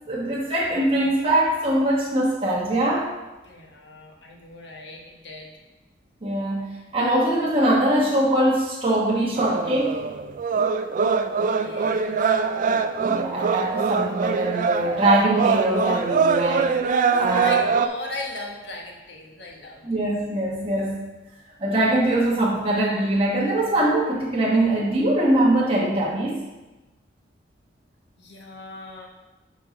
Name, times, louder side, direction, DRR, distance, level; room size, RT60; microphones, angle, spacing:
voice 1, 0.1-3.1 6.2-10.0 13.0-16.7 17.2-17.5 19.8-21.0 21.6-26.4, right 1 dB, 30° right, -6 dB, 1.3 m, -22 dB
voice 2, 3.4-5.6 11.2-12.2 17.1-19.9 28.2-29.1, left 2 dB, 70° left, 0 dB, 1.3 m, -37 dB
sound 1, 9.4-17.9, right 5 dB, 45° right, 0.3 m, -23 dB
5.6 x 4.7 x 5.0 m, 1.1 s
head